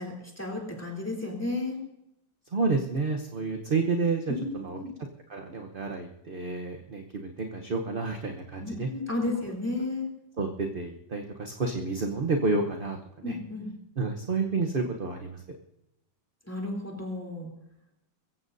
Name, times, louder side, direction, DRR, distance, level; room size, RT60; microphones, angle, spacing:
voice 1, 0.0-1.8 4.3-4.9 8.6-10.1 13.2-13.7 16.4-17.5, left 2 dB, 5° left, 0 dB, 3.3 m, -33 dB
voice 2, 2.5-4.8 5.3-8.9 10.4-13.4 14.0-15.4, right 3 dB, 40° right, 3 dB, 0.8 m, -30 dB
23.0 x 15.0 x 2.7 m, 0.84 s
omnidirectional pair, 2.0 m